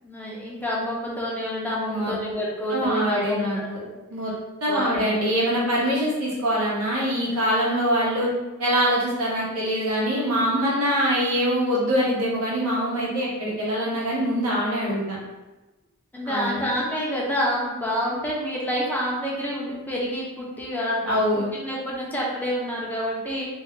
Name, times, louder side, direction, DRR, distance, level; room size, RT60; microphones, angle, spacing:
voice 1, 0.0-3.9 4.7-5.1 16.1-21.2 21.6-23.5, equal, 10° left, -5 dB, 0.6 m, -28 dB
voice 2, 2.7-3.8 4.1-4.3 4.6-8.3 8.6-15.0 16.2-16.7 21.1-21.5, equal, 75° right, -6 dB, 1.1 m, -24 dB
2.7 x 2.3 x 3.5 m, 1.1 s
head